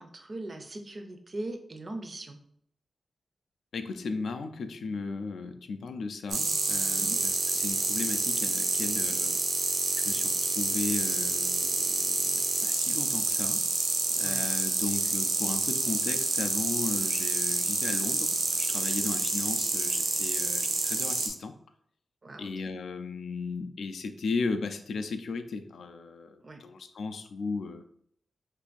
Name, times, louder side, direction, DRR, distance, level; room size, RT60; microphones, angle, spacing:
voice 1, 0.0-2.4 7.0-7.2 14.2-14.5 19.0-19.1 22.2-22.5 26.4-26.6, right 2 dB, 35° right, 5 dB, 0.4 m, -40 dB
voice 2, 3.7-9.4 10.0-13.7 14.2-21.5 22.4-27.8, left 4 dB, 85° left, 8 dB, 0.3 m, -36 dB
sound 1, 6.3-21.3, right 3 dB, 80° right, 0.6 m, -28 dB
2.5 x 2.5 x 3.9 m, 0.68 s
wide cardioid pair, 155°, 0 cm